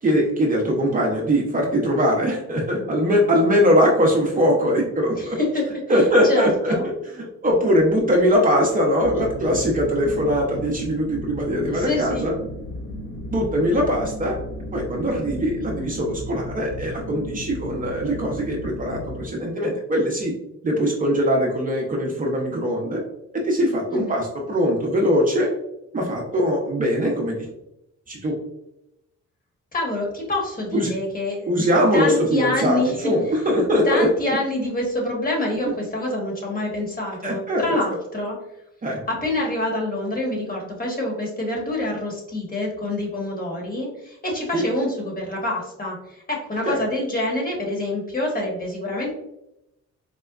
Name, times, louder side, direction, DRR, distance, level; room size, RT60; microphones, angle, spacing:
voice 1, 0.0-5.4 5.9-12.3 13.3-14.4 14.7-20.3 20.6-23.0 23.3-25.5 25.9-27.5 28.1-28.4 30.7-30.9 31.5-34.1 35.7-35.8 37.2-37.8 38.8-39.0 44.5-44.7 46.7-46.8, equal, 30° right, -1 dB, 0.6 m, -21 dB
voice 2, 5.1-6.8 11.7-12.3 23.9-24.2 29.7-31.5 31.9-33.1 33.8-38.4 39.1-49.1, left 1 dB, 30° left, -1 dB, 1.3 m, -26 dB
sound 1, 9.0-19.2, left 1 dB, 65° left, 1.2 m, -34 dB
4.3 x 2.1 x 2.3 m, 0.85 s
cardioid pair, 90°, 30 cm